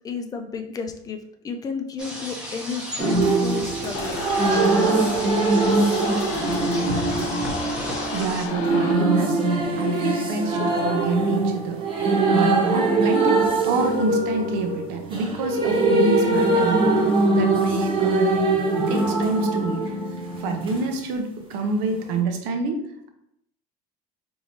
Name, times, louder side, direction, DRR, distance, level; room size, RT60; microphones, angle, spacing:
voice 1, 0.0-1.2 1.4-4.2, left 5 dB, 20° left, 5 dB, 0.4 m, -32 dB
sound 1, 2.0-8.5, equal, 5° right, 0.7 m, -34 dB
sound 2, 3.0-20.8 22.1-22.2, right 2 dB, 30° right, 1.0 m, -22 dB
sound 3, 3.9-8.9, left 4 dB, 85° left, 0.6 m, -32 dB
voice 2, 8.1-9.4 9.8-11.8 12.3-18.3 18.9-19.9 20.4-23.1, right 3 dB, 80° right, 5 dB, 0.6 m, -27 dB
4.4 x 2.7 x 2.9 m, 0.78 s
cardioid pair, 130°, 17 cm